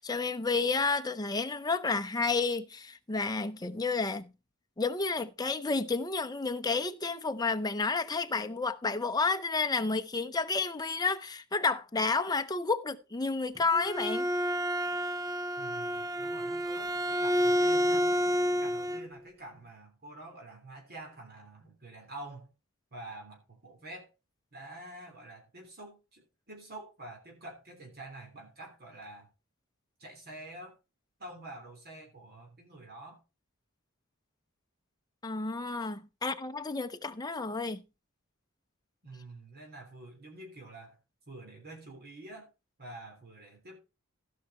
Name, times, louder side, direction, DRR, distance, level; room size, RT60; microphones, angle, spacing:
voice 1, 0.0-4.3 4.8-14.3 35.2-37.8, left 4 dB, 20° left, 0.8 m, -31 dB
Bowed string instrument, 13.5-19.1, equal, 15° right, 0.4 m, -29 dB
voice 2, 15.6-18.1 18.6-22.5 22.9-24.1 24.5-29.3 30.0-30.7 31.2-33.2 39.0-41.0 41.3-42.5 42.8-43.8, right 2 dB, 45° right, 3.4 m, -47 dB
16.0 x 5.7 x 4.2 m
head